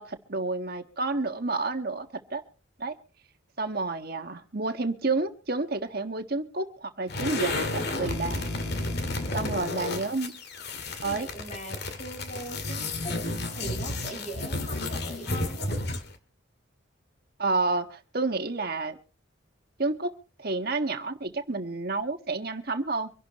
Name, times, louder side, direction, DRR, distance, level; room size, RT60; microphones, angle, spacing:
voice 1, 0.0-2.4 2.8-3.0 3.6-8.5 9.3-10.4 11.0-11.3 17.4-19.0 19.8-23.1, right 3 dB, 50° right, 1.5 m, -30 dB
sound 1, 7.1-16.2, left 2 dB, 55° left, 1.9 m, -32 dB
voice 2, 11.0-13.1 13.5-15.8, right 1 dB, 35° left, 5.1 m, -41 dB
25.0 x 11.5 x 3.1 m
head